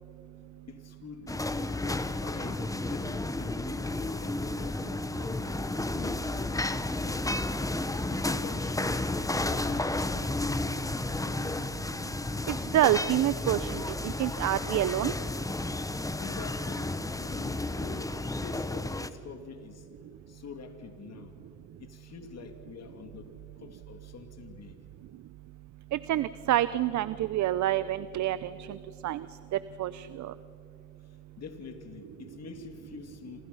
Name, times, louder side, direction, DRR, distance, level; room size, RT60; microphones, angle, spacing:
voice 1, 0.7-1.4 1.8-7.4 7.8-11.7 16.1-19.9 20.3-21.4 21.8-24.8 31.0-33.5, left 6 dB, 60° left, 6 dB, 2.9 m, -47 dB
sound 1, 1.3-19.1, left 2 dB, 10° left, 1.1 m, -32 dB
voice 2, 12.5-15.1 25.9-28.8 29.0-29.3 29.8-30.3, right 13 dB, 70° right, 15 dB, 0.7 m, -28 dB
28.0 x 27.5 x 5.6 m, 2.5 s
cardioid pair, 90°, 30 cm